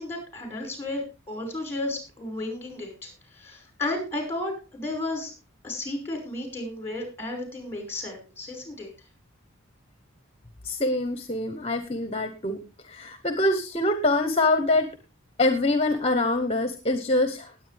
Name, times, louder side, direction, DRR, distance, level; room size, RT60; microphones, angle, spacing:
voice 1, 0.0-5.3 5.6-8.9, left 2 dB, 10° left, 3 dB, 5.6 m, -33 dB
voice 2, 10.6-12.6 12.9-14.9 15.4-17.5, left 2 dB, 30° left, 9 dB, 1.0 m, -24 dB
19.5 x 8.4 x 3.5 m, 0.30 s
head